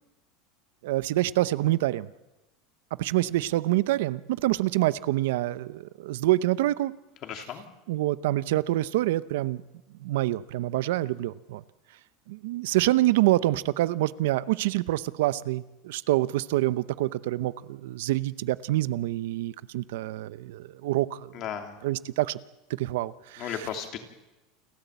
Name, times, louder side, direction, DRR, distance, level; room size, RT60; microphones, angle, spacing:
voice 1, 0.8-2.1 3.0-6.9 7.9-9.6 10.0-11.6 12.3-21.3 21.8-22.4 22.7-23.5, right 16 dB, 80° right, 17 dB, 0.7 m, -26 dB
voice 2, 7.2-7.6 21.3-21.8 23.4-24.0, left 9 dB, 40° left, 5 dB, 2.9 m, -35 dB
28.5 x 13.0 x 8.2 m, 1.0 s
supercardioid pair, 155°, 0 cm